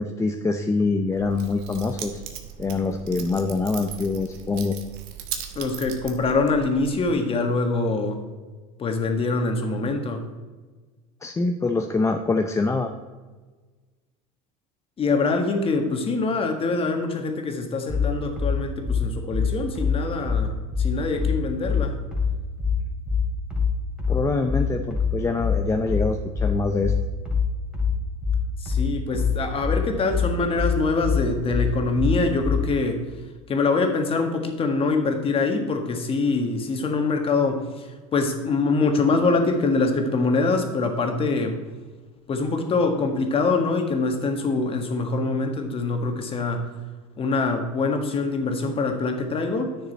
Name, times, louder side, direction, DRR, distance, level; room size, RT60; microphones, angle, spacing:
voice 1, 0.0-2.2 2.6-4.8 11.2-12.9 24.1-26.9, left 3 dB, 15° left, 5 dB, 0.6 m, -25 dB
Keys jangling, 1.1-7.1, right 9 dB, 65° right, 1.2 m, -38 dB
voice 2, 5.5-8.2 8.8-10.2 15.0-22.0 28.6-33.0 33.5-41.6 42.3-46.7 47.2-49.8, left 3 dB, 30° left, 5 dB, 1.6 m, -24 dB
sound 1, 17.9-32.7, left 6 dB, 5° right, 2.6 m, -24 dB
10.0 x 6.6 x 4.2 m, 1.3 s
supercardioid pair, 105°, 18 cm